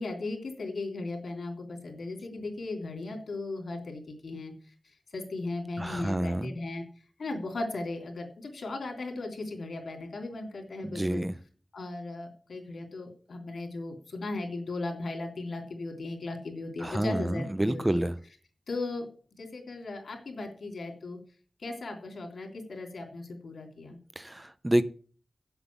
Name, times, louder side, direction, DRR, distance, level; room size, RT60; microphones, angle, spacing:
voice 1, 0.0-4.5 5.1-6.8 7.2-11.2 11.7-18.0 18.7-19.1 19.4-21.2 21.6-24.0, left 2 dB, 90° left, 4 dB, 3.1 m, -37 dB
voice 2, 5.8-6.5 10.8-11.3 16.8-18.1 24.2-24.8, right 1 dB, 20° right, 14 dB, 0.9 m, -28 dB
8.0 x 7.8 x 8.4 m, 0.42 s
wide cardioid pair, 65°, 0 cm